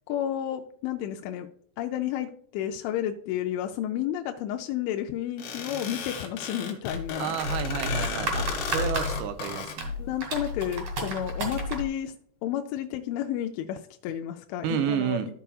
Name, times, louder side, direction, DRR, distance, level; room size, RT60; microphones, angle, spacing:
voice 1, 0.1-1.5 1.8-7.4 10.0-12.1 12.4-15.3, left 11 dB, 85° left, 5 dB, 2.9 m, -31 dB
sound 1, 5.4-9.8, left 5 dB, 70° left, 3.2 m, -35 dB
sound 2, 6.9-11.9, left 1 dB, 45° right, 2.5 m, -32 dB
voice 2, 7.2-9.9 14.6-15.3, right 9 dB, 85° right, 8 dB, 2.7 m, -30 dB
14.0 x 5.6 x 2.3 m, 0.64 s
omnidirectional pair, 5.3 m